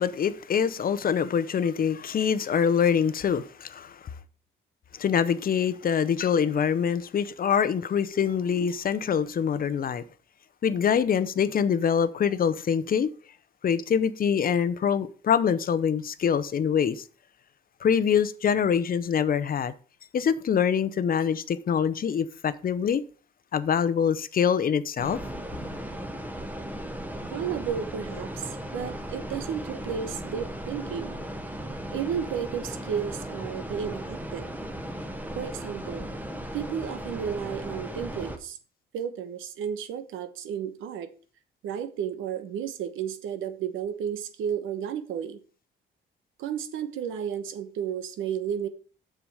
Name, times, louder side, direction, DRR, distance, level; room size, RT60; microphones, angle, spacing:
voice 1, 0.0-4.1 4.9-10.0 10.6-13.1 13.6-17.0 17.8-19.7 20.1-23.0 23.5-25.3, left 7 dB, 45° left, 0.7 m, -25 dB
sound 1, 25.0-38.4, right 1 dB, 10° right, 1.1 m, -36 dB
voice 2, 27.2-31.2 31.9-34.5 35.3-36.1 36.5-38.6 38.9-41.1 41.6-45.4 46.4-48.7, right 8 dB, 85° right, 1.0 m, -33 dB
7.2 x 6.9 x 4.8 m
cardioid pair, 90°, 20 cm